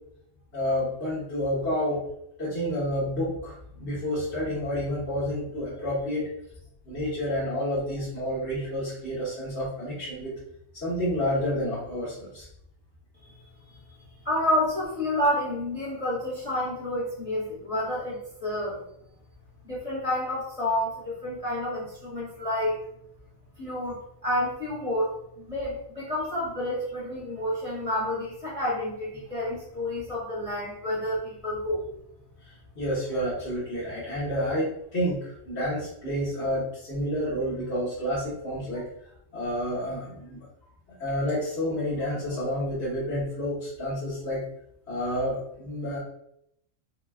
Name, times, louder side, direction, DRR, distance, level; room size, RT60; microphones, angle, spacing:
voice 1, 0.5-2.0 2.4-6.3 6.8-10.3 10.8-12.5 32.4-38.9 39.3-40.5 41.0-44.4 44.9-46.0, equal, 50° left, -10 dB, 1.5 m, -29 dB
voice 2, 14.2-18.8 19.6-22.8 23.6-31.8, left 1 dB, 25° left, -8 dB, 1.3 m, -29 dB
4.5 x 2.2 x 2.3 m, 0.75 s
omnidirectional pair, 1.4 m